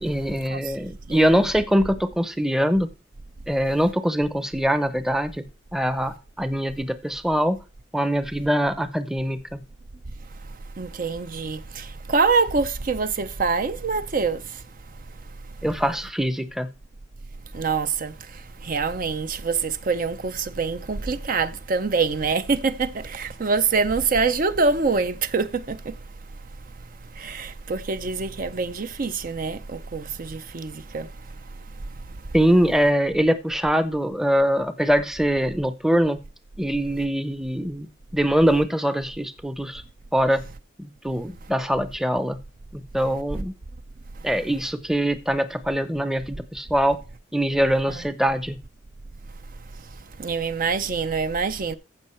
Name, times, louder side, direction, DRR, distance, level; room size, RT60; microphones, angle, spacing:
voice 1, 0.0-2.9 3.5-7.6 7.9-9.4 15.6-16.7 32.3-36.2 36.6-39.8 40.1-40.4 40.8-42.4 42.7-43.5 44.2-47.0 47.3-48.6, equal, ahead, 0.7 m, -23 dB
voice 2, 10.8-14.4 17.5-18.1 18.6-25.8 27.2-31.1 47.9-48.0 50.2-51.8, right 4 dB, 45° right, 0.6 m, -25 dB
15.0 x 5.6 x 4.3 m
head